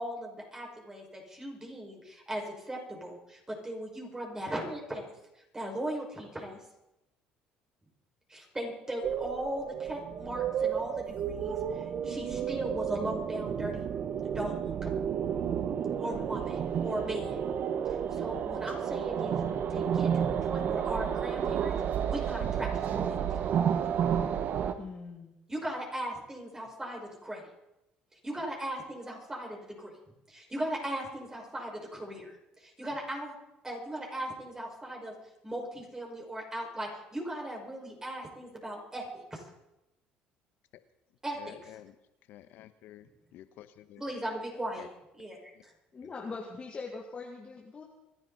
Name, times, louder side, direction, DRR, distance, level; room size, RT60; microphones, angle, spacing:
voice 1, 0.0-5.1 5.5-6.6 8.3-13.9 14.2-14.9 16.0-17.5 17.9-19.4 19.7-23.4 25.5-27.4 28.2-30.0 30.3-33.3 33.6-35.1 35.4-39.4 41.2-41.6 44.0-44.9 45.2-45.7, right 1 dB, 15° right, -1 dB, 5.5 m, -38 dB
sound 1, 9.0-24.7, right 8 dB, 55° right, 1.3 m, -31 dB
voice 2, 24.8-25.4 45.9-47.8, left 4 dB, 35° left, -1 dB, 2.4 m, -41 dB
voice 3, 41.4-41.9 42.3-44.0 44.8-44.9 45.2-45.3 45.5-45.6 46.0-46.1, left 13 dB, 70° left, 12 dB, 1.1 m, -51 dB
26.5 x 10.5 x 4.2 m, 0.91 s
supercardioid pair, 75°, 3 cm